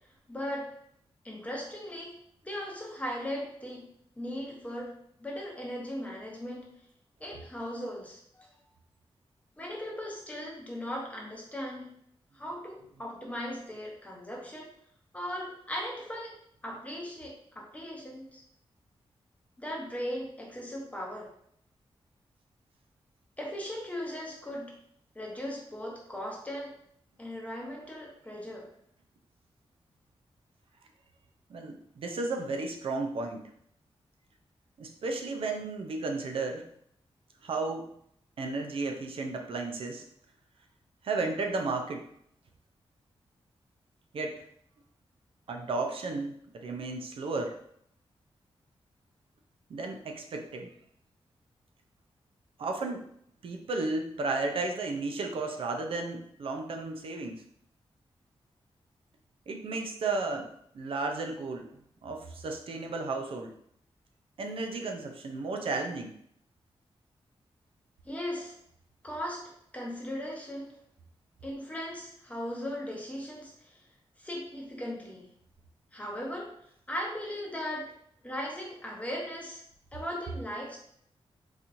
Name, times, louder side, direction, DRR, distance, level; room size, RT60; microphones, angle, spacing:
voice 1, 0.3-0.7 1.2-2.2 2.4-3.9 4.2-4.9 5.2-6.7 7.2-8.6 9.6-11.9 12.3-14.7 15.1-16.3 16.6-18.4 19.6-21.3 23.4-24.7 25.1-26.7 27.2-28.7 68.0-68.6 69.0-70.8 71.4-73.8 74.2-75.3 75.9-76.5 76.9-77.9 78.2-79.6 79.9-80.8, equal, 15° left, -2 dB, 0.8 m, -38 dB
voice 2, 31.5-33.4 34.8-36.7 37.4-37.9 38.4-40.0 41.0-42.1 44.1-44.4 45.5-47.6 49.7-50.7 52.6-53.0 53.4-57.4 59.5-60.5 60.7-63.5 64.4-66.1, right 3 dB, 65° right, 3 dB, 0.5 m, -33 dB
4.0 x 2.9 x 2.6 m, 0.69 s
wide cardioid pair, 170°, 10 cm